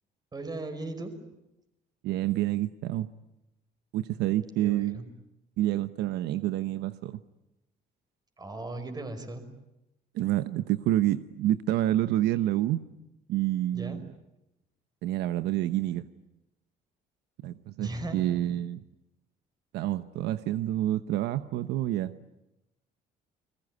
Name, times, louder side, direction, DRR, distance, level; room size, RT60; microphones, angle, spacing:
voice 1, 0.3-1.2 4.6-5.1 8.4-9.5 13.7-14.0 17.8-18.2, right 2 dB, 25° right, 8 dB, 5.2 m, -37 dB
voice 2, 2.0-3.1 3.9-5.0 5.6-7.2 10.1-12.8 13.3-14.1 15.0-16.1 17.4-18.8 19.7-22.1, right 13 dB, 80° right, 12 dB, 1.0 m, -28 dB
29.5 x 20.5 x 9.6 m, 0.88 s
cardioid pair, 110°, 17 cm